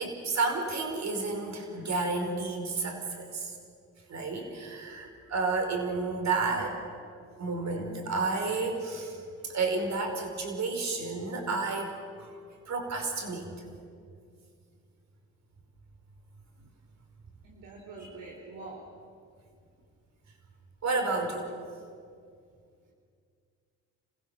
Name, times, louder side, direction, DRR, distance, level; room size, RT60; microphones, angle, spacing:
voice 1, 0.0-3.6 4.1-6.8 7.4-11.9 12.2-12.3 12.7-13.7 20.8-21.5, right 3 dB, 55° right, 3 dB, 5.4 m, -31 dB
voice 2, 17.4-18.9, right 3 dB, 80° right, -3 dB, 3.5 m, -45 dB
29.5 x 16.0 x 7.3 m, 2.3 s
supercardioid pair, 70°, 32 cm